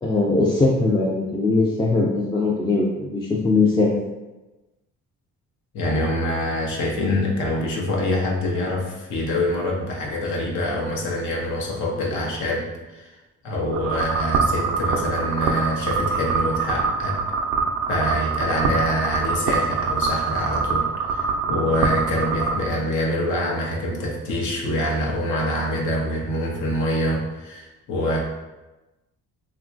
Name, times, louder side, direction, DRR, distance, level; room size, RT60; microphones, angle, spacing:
voice 1, 0.0-4.0, left 3 dB, 15° left, -4 dB, 0.3 m, -20 dB
voice 2, 5.7-13.1 13.4-17.2 17.9-28.2, left 1 dB, 75° left, -1 dB, 0.7 m, -25 dB
sound 1, 13.7-22.6, right 5 dB, 85° right, 0.4 m, -24 dB
2.9 x 2.3 x 2.5 m, 1.1 s
cardioid pair, 90°, 30 cm